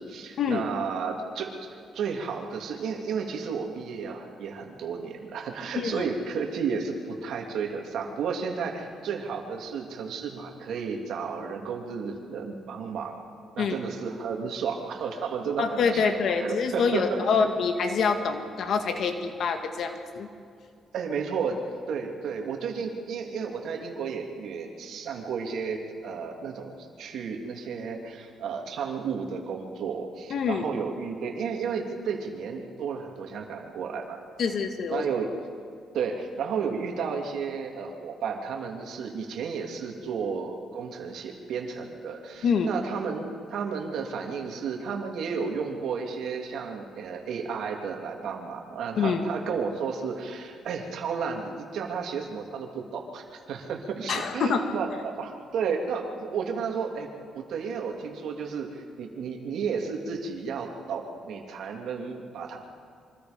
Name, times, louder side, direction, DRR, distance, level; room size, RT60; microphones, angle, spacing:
voice 1, 0.0-13.2 13.5-16.1 16.4-17.5 20.9-21.6 21.9-34.2 34.9-35.3 35.9-57.1 57.3-62.6, right 6 dB, 75° right, 2 dB, 2.9 m, -32 dB
voice 2, 5.8-6.1 13.6-13.8 15.6-20.3 30.3-30.7 34.4-35.1 42.4-42.7 49.0-49.2 54.1-54.7, left 5 dB, 65° left, 6 dB, 1.9 m, -26 dB
26.5 x 24.5 x 5.3 m, 2.3 s
cardioid pair, 90°, 0 cm